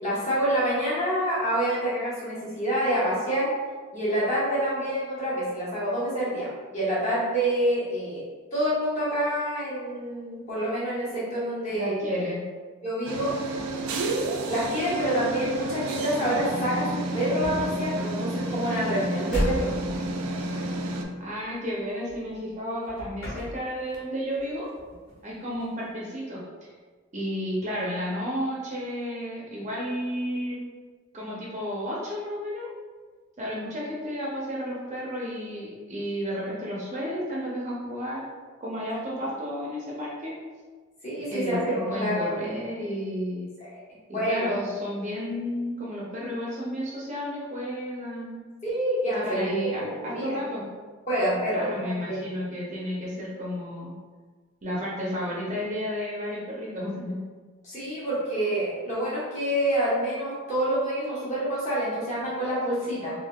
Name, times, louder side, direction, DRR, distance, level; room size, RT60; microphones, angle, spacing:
voice 1, 0.0-3.5 3.9-8.2 8.5-12.0 12.8-13.6 14.5-19.7 41.0-42.6 43.6-43.8 44.1-44.6 48.6-50.4 51.1-52.3 57.6-63.1, right 1 dB, 35° left, -9 dB, 1.2 m, -27 dB
voice 2, 11.7-12.4 21.2-24.7 25.2-26.4 27.1-30.6 31.1-32.7 33.4-38.2 38.6-40.3 41.3-43.5 44.1-48.4 49.2-50.7 51.5-53.9 54.6-57.2, equal, 35° right, -5 dB, 0.5 m, -32 dB
sound 1, 13.0-21.0, right 2 dB, 90° right, 0.4 m, -31 dB
sound 2, 13.2-22.5 22.8-24.1 24.3-25.9, equal, 80° left, 1.3 m, -37 dB
3.4 x 2.3 x 2.2 m, 1.4 s
head